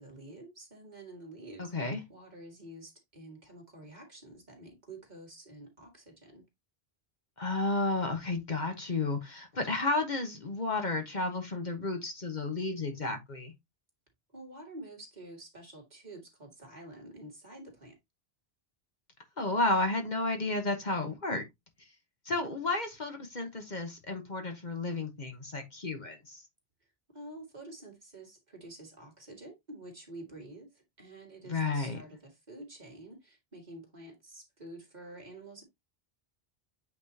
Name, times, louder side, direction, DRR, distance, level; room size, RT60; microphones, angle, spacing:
voice 1, 0.0-6.4 14.3-18.0 22.3-22.5 27.1-35.6, right 1 dB, 45° right, 2.5 m, -49 dB
voice 2, 1.6-2.0 7.4-13.5 19.4-21.4 22.2-26.4 31.5-32.0, left 2 dB, 45° left, 1.2 m, -32 dB
8.5 x 4.3 x 2.8 m
omnidirectional pair, 1.1 m